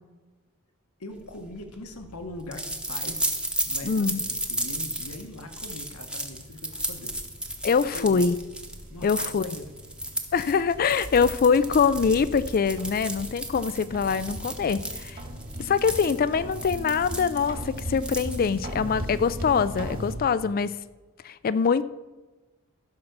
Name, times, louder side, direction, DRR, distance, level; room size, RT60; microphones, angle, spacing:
voice 1, 1.0-3.4 3.6-7.1 7.9-8.4 8.9-9.7, left 1 dB, 85° left, 6 dB, 1.3 m, -41 dB
sound 1, 1.3-18.7, right 1 dB, 5° right, 1.0 m, -34 dB
sound 2, 2.8-20.2, equal, 40° right, 2.1 m, -40 dB
voice 2, 3.8-4.2 7.6-8.4 9.0-9.6 10.3-15.2 15.6-20.7 21.2-21.8, left 5 dB, 40° left, 14 dB, 0.4 m, -24 dB
15.0 x 5.8 x 6.6 m, 1.2 s
head